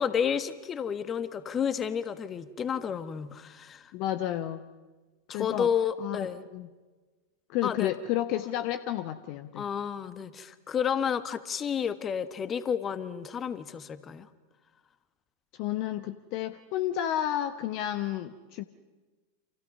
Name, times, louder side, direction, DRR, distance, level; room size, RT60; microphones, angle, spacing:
voice 1, 0.0-3.9 5.3-6.4 7.6-7.9 9.5-14.3, left 7 dB, 25° left, 13 dB, 1.5 m, -31 dB
voice 2, 3.9-4.6 5.3-5.7 6.0-6.3 6.5-6.7 7.5-9.6 15.5-18.6, left 12 dB, 45° left, 12 dB, 0.9 m, -31 dB
29.5 x 27.5 x 5.5 m, 1.3 s
figure-of-eight pair, 90°, 0 cm